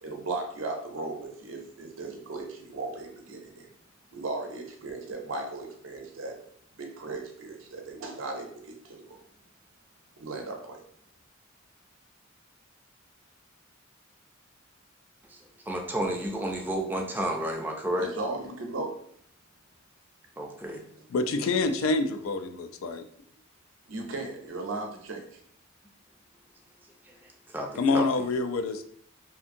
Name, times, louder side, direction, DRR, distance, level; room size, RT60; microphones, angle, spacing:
voice 1, 0.0-3.7 4.1-6.4 6.8-9.2 10.2-10.8 18.0-18.9 21.0-21.1 23.9-25.4, right 3 dB, 75° right, 3 dB, 0.6 m, -36 dB
voice 2, 15.7-18.1 20.4-20.8 27.1-27.2 27.5-28.3, right 1 dB, 10° right, 1 dB, 0.4 m, -31 dB
voice 3, 21.1-23.0 27.8-28.8, left 3 dB, 90° left, 8 dB, 0.3 m, -26 dB
2.7 x 2.5 x 2.5 m, 0.62 s
head